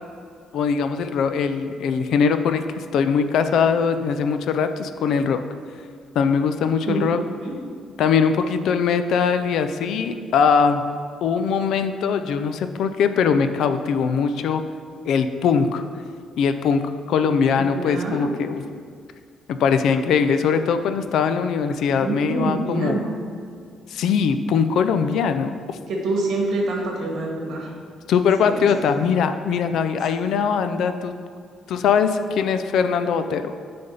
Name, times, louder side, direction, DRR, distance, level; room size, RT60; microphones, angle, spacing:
voice 1, 0.5-5.4 6.1-7.2 8.0-10.8 11.2-14.6 15.0-15.8 16.4-18.6 19.5-23.0 23.9-25.8 28.1-31.1 31.7-33.5, left 6 dB, 70° left, 9 dB, 0.4 m, -21 dB
voice 2, 17.6-18.2 22.0-23.2 25.9-27.7 28.4-28.6 30.3-30.4, right 2 dB, 65° right, -1 dB, 1.5 m, -26 dB
9.4 x 3.5 x 5.4 m, 2.2 s
cardioid pair, 155°, 0 cm